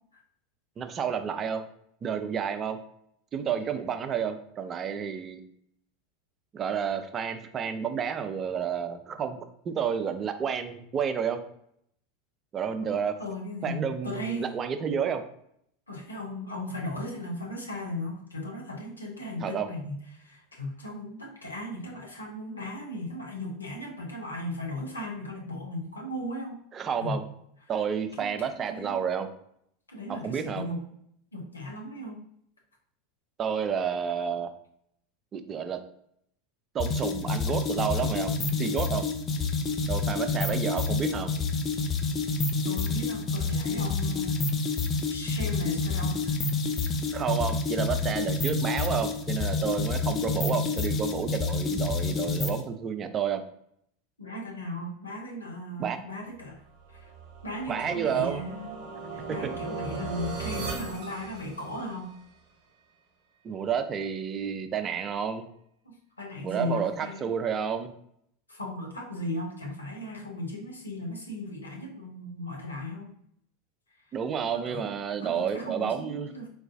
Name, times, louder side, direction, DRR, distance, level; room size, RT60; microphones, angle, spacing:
voice 1, 0.8-1.6 2.0-2.8 3.3-5.4 6.5-11.4 12.5-13.1 13.6-15.2 19.4-19.7 26.7-27.2 27.7-29.3 30.2-30.7 33.4-34.5 35.3-35.8 36.7-39.1 39.9-41.3 47.1-53.4 55.8-56.0 57.7-58.4 63.4-65.5 66.4-67.9 74.1-76.3, right 7 dB, 30° right, 8 dB, 0.4 m, -30 dB
voice 2, 13.2-14.6 15.9-26.6 27.0-27.2 28.2-29.1 29.9-30.8 31.3-32.2 42.6-44.4 44.6-46.5 47.1-47.2 54.2-56.6 56.9-57.1 57.4-58.8 59.1-62.1 65.8-67.3 68.5-73.1 74.5-74.9 75.2-76.5, left 1 dB, 80° left, -1 dB, 0.8 m, -37 dB
sound 1, 36.8-52.6, left 3 dB, 30° left, 0.5 m, -28 dB
sound 2, 56.9-62.1, right 4 dB, 45° right, 0.9 m, -38 dB
3.8 x 2.3 x 2.4 m, 0.71 s
figure-of-eight pair, 80°, 0 cm